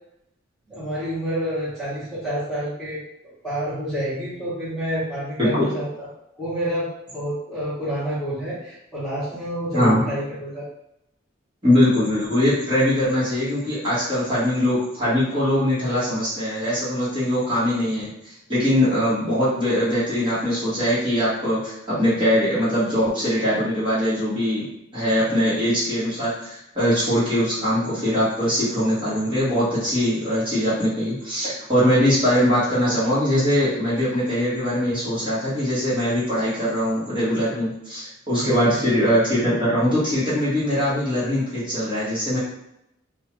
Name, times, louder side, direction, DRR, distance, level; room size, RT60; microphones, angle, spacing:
voice 1, 0.7-3.1 3.4-6.1 6.4-10.7 38.4-38.8, equal, ahead, -12 dB, 1.3 m, -28 dB
voice 2, 11.6-24.6 24.9-42.4, equal, 25° right, -11 dB, 1.3 m, -22 dB
2.8 x 2.4 x 3.0 m, 0.81 s
head